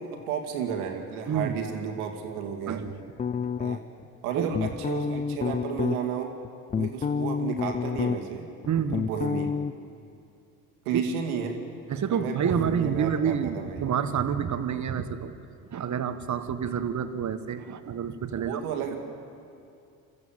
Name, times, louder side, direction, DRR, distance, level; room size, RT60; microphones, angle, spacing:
voice 1, 0.0-2.8 3.6-3.8 4.2-6.4 6.8-8.5 8.9-9.5 10.9-11.6 12.1-13.9 18.4-19.0, right 7 dB, 80° right, 4 dB, 2.2 m, -32 dB
voice 2, 1.3-1.6 2.7-3.0 4.3-4.5 6.8-6.9 8.6-9.1 10.9-11.0 11.9-15.3 15.7-18.6, right 7 dB, 40° right, 10 dB, 1.4 m, -28 dB
sound 1, 3.2-4.0 4.5-6.0 6.4-8.4 8.6-9.7, left 6 dB, 20° left, 0.4 m, -28 dB
25.0 x 14.0 x 7.4 m, 2.5 s
hypercardioid pair, 60°, 43 cm